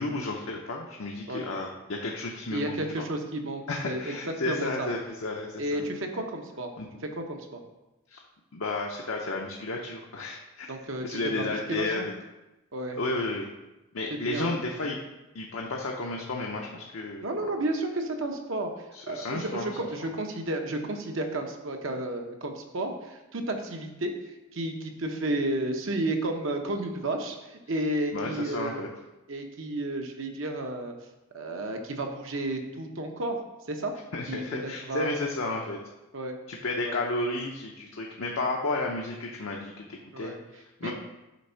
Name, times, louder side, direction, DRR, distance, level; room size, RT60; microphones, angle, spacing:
voice 1, 0.0-3.1 3.7-5.9 6.8-6.9 8.1-8.2 8.5-10.7 11.0-12.1 13.0-13.5 13.9-15.0 15.3-17.2 18.9-20.1 28.1-28.9 34.1-35.8 36.5-40.9, left 2 dB, 70° left, 0 dB, 0.7 m, -32 dB
voice 2, 2.5-4.2 4.5-4.9 5.6-6.7 7.2-7.6 10.7-12.1 12.7-13.0 14.1-14.5 17.2-18.7 19.1-28.8 29.3-30.9 31.3-33.4 33.7-33.9 34.3-35.1 36.1-36.4 36.8-37.0 40.1-40.4 40.8-40.9, right 1 dB, 65° right, 4 dB, 0.9 m, -32 dB
8.2 x 3.5 x 5.6 m, 1.0 s
head